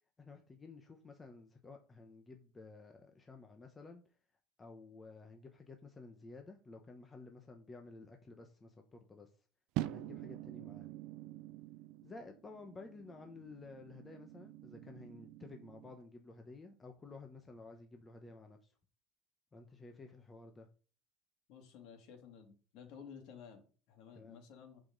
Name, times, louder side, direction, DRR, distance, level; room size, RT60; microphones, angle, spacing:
voice 1, 0.2-4.0 4.6-9.3 9.8-10.9 12.0-18.7 19.5-20.7 24.1-24.4, left 3 dB, 15° left, 4 dB, 1.0 m, -53 dB
sound 1, 9.8-16.0, right 16 dB, 55° right, 0.4 m, -45 dB
voice 2, 21.5-24.8, left 7 dB, 55° left, 4 dB, 2.8 m, -54 dB
11.0 x 5.1 x 4.0 m, 0.37 s
cardioid pair, 165°, 0 cm